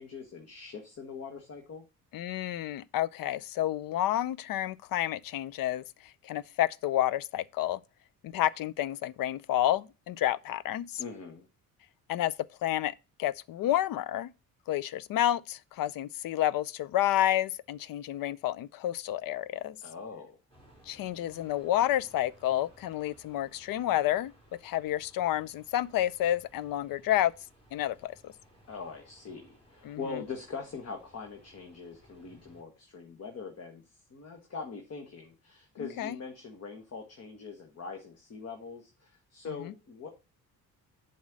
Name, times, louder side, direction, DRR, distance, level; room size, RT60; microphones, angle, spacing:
voice 1, 0.0-1.8 11.0-11.5 19.8-20.4 28.7-40.1, left 5 dB, 45° left, 1.4 m, -42 dB
voice 2, 2.1-5.8 6.2-7.8 8.2-11.0 12.1-12.3 12.6-14.3 14.7-19.8 20.9-24.3 24.6-27.3 27.7-28.3 29.8-30.2 36.0-36.2, left 13 dB, 70° left, 0.5 m, -30 dB
sound 1, 20.5-32.6, equal, 15° left, 2.7 m, -60 dB
7.3 x 4.3 x 6.2 m
cardioid pair, 120°, 36 cm